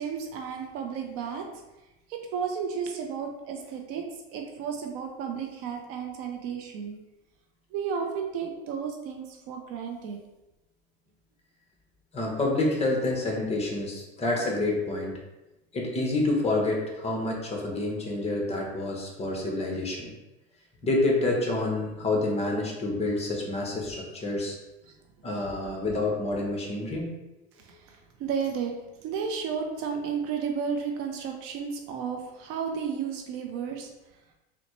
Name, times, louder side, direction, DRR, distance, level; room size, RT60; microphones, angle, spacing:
voice 1, 0.0-1.5 2.1-7.0 7.7-10.2 24.9-25.0 25.7-26.0 27.6-28.7 29.0-33.9, right 6 dB, 50° right, 3 dB, 0.5 m, -33 dB
voice 2, 12.1-15.1 15.7-20.1 20.8-24.5 25.2-27.1, left 2 dB, 20° left, -1 dB, 0.8 m, -28 dB
4.0 x 2.1 x 3.0 m, 1.0 s
supercardioid pair, 105°, 31 cm